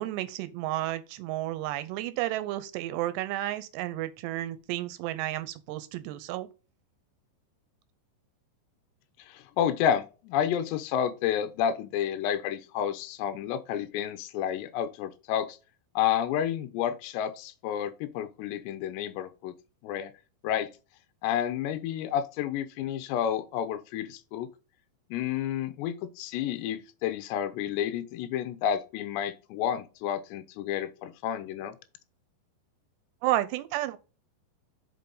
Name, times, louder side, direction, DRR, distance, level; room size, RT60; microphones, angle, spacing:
voice 1, 0.0-6.5 33.2-34.0, right 15 dB, 80° right, 2.7 m, -32 dB
voice 2, 9.3-15.6 16.0-19.5 19.8-20.1 20.4-20.7 21.2-24.5 25.1-31.7, left 9 dB, 85° left, 2.8 m, -30 dB
6.7 x 5.3 x 3.9 m
omnidirectional pair, 5.1 m